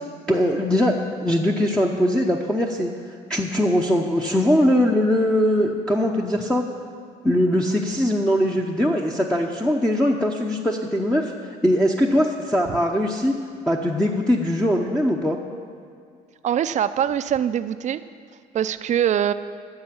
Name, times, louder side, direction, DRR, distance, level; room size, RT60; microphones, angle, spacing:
voice 1, 0.3-2.9 3.3-6.6 7.2-13.3 13.7-15.4, equal, 5° left, 0 dB, 0.8 m, -21 dB
voice 2, 16.4-18.0 18.5-19.3, right 9 dB, 45° right, 12 dB, 0.5 m, -23 dB
10.5 x 6.7 x 8.8 m, 2.3 s
cardioid pair, 110°, 17 cm